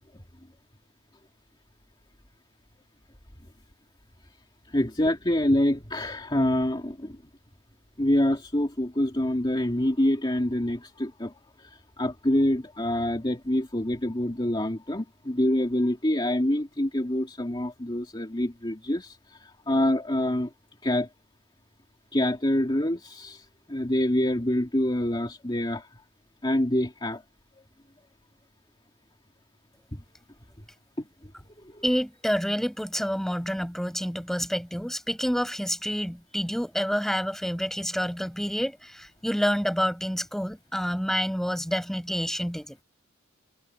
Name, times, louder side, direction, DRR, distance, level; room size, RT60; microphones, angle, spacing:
voice 1, 4.7-7.1 8.0-11.3 12.0-19.1 19.7-20.5 20.8-21.1 22.1-23.4 23.7-25.8 26.4-27.2 29.9-30.0, left 1 dB, 25° left, 2.6 m, -26 dB
voice 2, 31.8-42.8, equal, ahead, 5.5 m, -28 dB
head